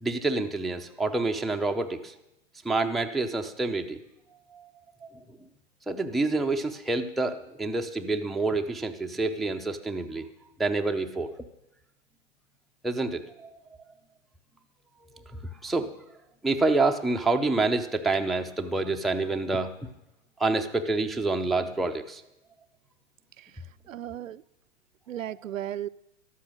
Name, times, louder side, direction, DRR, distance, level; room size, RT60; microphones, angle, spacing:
voice 1, 0.0-2.1 2.6-4.0 4.5-4.7 5.9-10.3 10.6-11.3 12.8-13.5 15.1-15.9 16.4-19.7 20.4-22.2, right 3 dB, ahead, 3 dB, 0.4 m, -27 dB
voice 2, 23.4-24.4 25.1-25.9, right 11 dB, 80° right, 14 dB, 0.6 m, -36 dB
14.0 x 12.0 x 6.2 m, 0.88 s
hypercardioid pair, 115°, 38 cm